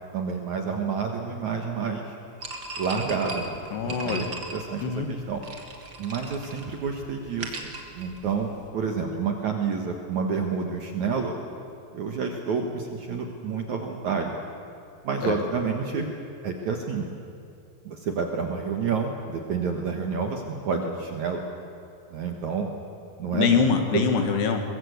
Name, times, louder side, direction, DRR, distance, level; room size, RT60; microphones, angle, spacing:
voice 1, 0.1-2.1 2.8-4.8 5.1-5.4 6.0-7.6 8.0-11.4 11.9-14.4 15.0-16.1 16.4-17.1 17.9-21.4 22.1-22.7 23.2-23.5 23.9-24.0, right 5 dB, 60° right, 3 dB, 2.1 m, -29 dB
sound 1, 2.4-8.7, right 2 dB, 40° right, 1.5 m, -38 dB
voice 2, 3.7-4.3 4.8-5.1 15.2-15.4 23.3-24.6, left 6 dB, 70° left, 5 dB, 3.7 m, -24 dB
22.5 x 22.0 x 8.1 m, 2.6 s
omnidirectional pair, 5.0 m